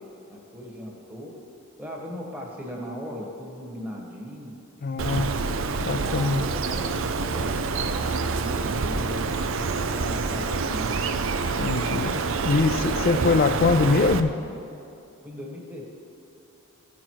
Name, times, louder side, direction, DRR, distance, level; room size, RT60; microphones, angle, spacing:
voice 1, 0.3-1.3 1.8-4.5 5.3-5.5 6.1-11.0 13.0-13.1 15.2-16.0, equal, 5° right, -2 dB, 1.3 m, -38 dB
voice 2, 4.8-5.3 5.8-6.4 11.6-14.3, left 4 dB, 40° left, 12 dB, 0.4 m, -23 dB
sound 1, 4.9-14.7, left 3 dB, 85° left, 1.3 m, -50 dB
Bird, 5.0-14.2, right 4 dB, 60° right, 0.5 m, -27 dB
15.0 x 6.0 x 4.6 m, 2.8 s
head